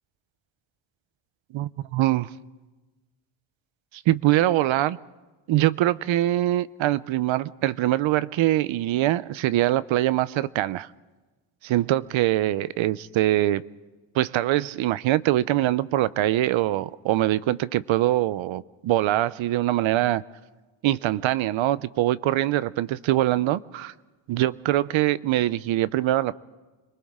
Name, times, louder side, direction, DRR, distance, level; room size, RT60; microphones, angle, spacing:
voice 1, 1.5-2.3 3.9-5.0 5.5-10.9 11.6-13.6 14.1-20.2 20.8-23.9 24.3-26.3, right 14 dB, 70° right, 17 dB, 0.8 m, -23 dB
30.0 x 23.5 x 3.7 m, 1.2 s
cardioid pair, 170°, 48 cm